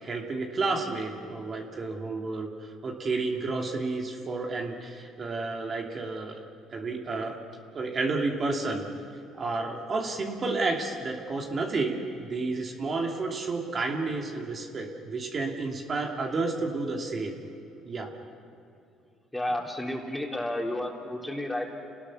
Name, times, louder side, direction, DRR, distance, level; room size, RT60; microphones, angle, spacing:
voice 1, 0.0-6.4 6.7-7.4 7.7-8.9 9.4-17.4 17.8-18.1, right 3 dB, 45° right, 1 dB, 2.7 m, -31 dB
voice 2, 19.3-21.7, left 1 dB, 5° left, 0 dB, 3.7 m, -31 dB
29.5 x 19.0 x 6.3 m, 2.6 s
supercardioid pair, 75°, 0 cm